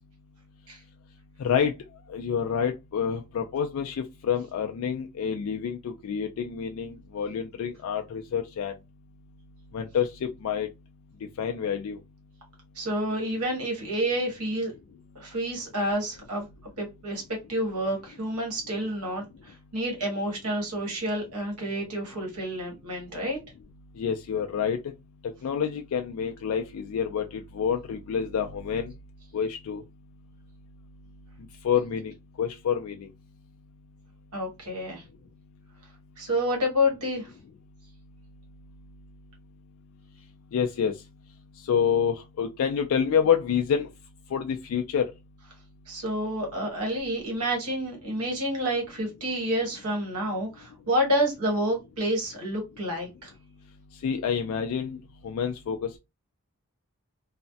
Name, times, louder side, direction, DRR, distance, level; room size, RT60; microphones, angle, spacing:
voice 1, 1.4-1.7 2.1-8.7 9.7-10.7 11.4-12.0 24.0-24.8 25.2-28.9 29.3-29.8 31.6-33.1 40.5-40.9 41.6-43.9 44.3-45.1 54.0-55.0 55.2-56.0, left 7 dB, 70° left, 0.3 m, -28 dB
voice 2, 12.7-14.7 15.1-16.4 16.8-17.2 17.5-23.4 34.3-35.0 36.2-37.3 45.9-53.3, equal, 90° right, 1.3 m, -29 dB
3.1 x 2.0 x 2.6 m
head